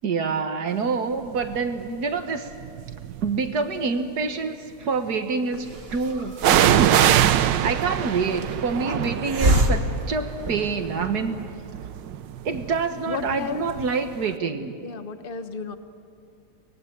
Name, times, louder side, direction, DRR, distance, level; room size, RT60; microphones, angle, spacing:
voice 1, 0.0-2.5 3.2-11.4 12.5-14.8, right 4 dB, 60° right, 7 dB, 1.9 m, -27 dB
sound 1, 1.4-1.8 2.5-3.5 6.4-14.0 14.3-14.4, right 11 dB, 85° right, 1.4 m, -24 dB
Hiss, 5.5-11.0, right 1 dB, 35° right, 1.9 m, -28 dB
voice 2, 13.0-13.6 14.8-15.8, left 5 dB, 35° left, 9 dB, 1.2 m, -33 dB
25.0 x 19.5 x 9.0 m, 2.5 s
omnidirectional pair, 1.9 m